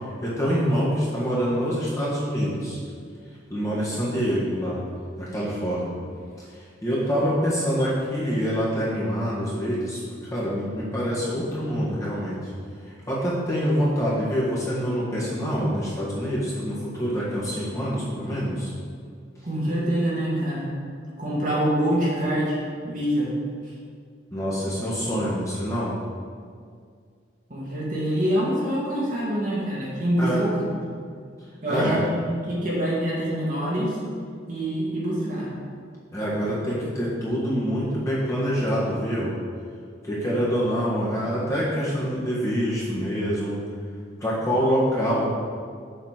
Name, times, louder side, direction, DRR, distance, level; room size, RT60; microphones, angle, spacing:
voice 1, 0.2-2.8 3.5-4.8 5.2-5.9 6.8-10.0 10.3-12.3 12.9-18.7 24.3-25.9 30.2-30.4 31.7-32.0 36.1-39.3 40.0-43.6 44.2-45.2, equal, 15° left, -8 dB, 1.5 m, -25 dB
voice 2, 19.4-20.7 21.2-23.3 27.5-30.6 31.6-34.0 34.5-35.5, equal, 45° right, -6 dB, 1.7 m, -25 dB
6.9 x 4.2 x 5.8 m, 2.1 s
head